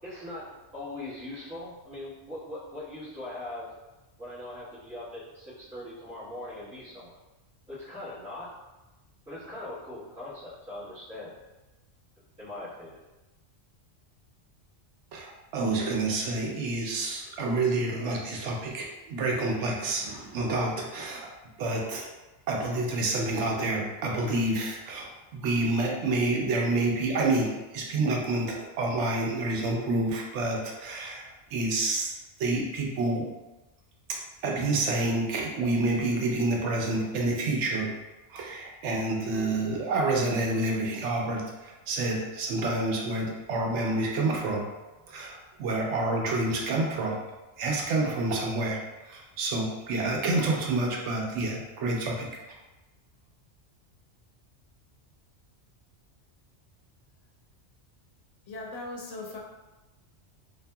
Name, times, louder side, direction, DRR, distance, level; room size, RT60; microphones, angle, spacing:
voice 1, 0.0-3.7 4.2-7.2 7.7-8.5 9.2-11.3 12.4-13.0, left 1 dB, 5° right, -13 dB, 1.2 m, -40 dB
voice 2, 15.1-21.3 21.6-22.1 22.5-32.1 32.4-33.3 34.1-37.9 38.3-44.7 45.1-47.1 47.6-52.3, right 2 dB, 80° right, -1 dB, 0.9 m, -28 dB
voice 3, 58.5-59.4, left 2 dB, 80° left, -2 dB, 0.9 m, -38 dB
2.6 x 2.6 x 2.2 m, 1.1 s
omnidirectional pair, 1.2 m